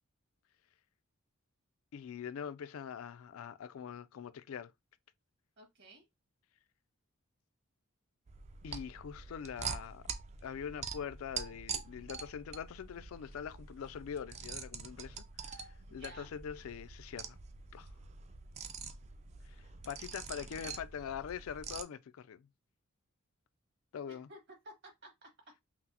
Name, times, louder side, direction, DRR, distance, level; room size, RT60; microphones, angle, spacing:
voice 1, 1.9-4.7 8.6-10.0 10.4-17.4 17.7-17.9 19.4-22.5 23.9-24.3, left 7 dB, 75° left, 0.3 m, -43 dB
voice 2, 5.6-6.1 15.9-16.3 24.1-24.4 24.6-25.3, right 1 dB, 55° right, 1.7 m, -54 dB
sound 1, 8.3-21.8, right 6 dB, 30° right, 0.4 m, -45 dB
5.8 x 2.0 x 2.8 m
head